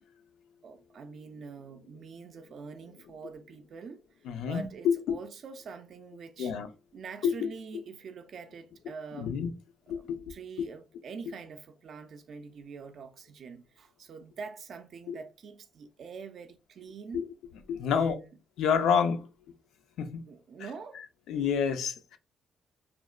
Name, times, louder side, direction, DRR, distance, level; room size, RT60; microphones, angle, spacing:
voice 1, 0.6-6.5 6.9-9.4 9.9-17.2 17.9-18.3 20.3-21.0, right 5 dB, 60° right, 0.3 m, -45 dB
voice 2, 4.3-5.2 6.4-6.7 7.2-7.3 9.2-9.5 9.9-10.3 15.1-15.2 17.1-17.2 17.7-18.2 18.6-19.3 20.0-20.2 21.3-22.2, left 7 dB, 80° left, 0.4 m, -28 dB
3.1 x 2.1 x 2.3 m
cardioid pair, 90°, 0 cm